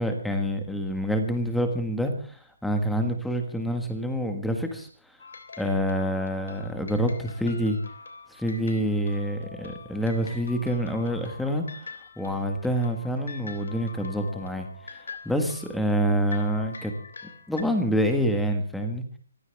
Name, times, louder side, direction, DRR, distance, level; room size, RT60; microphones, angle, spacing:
voice 1, 0.0-4.9 5.6-7.8 8.3-11.6 12.2-16.9 17.5-19.0, equal, ahead, 5 dB, 1.6 m, -27 dB
sound 1, 5.2-17.6, left 4 dB, 80° left, 3.4 m, -44 dB
24.0 x 15.0 x 3.5 m, 0.40 s
hypercardioid pair, 175°, 0 cm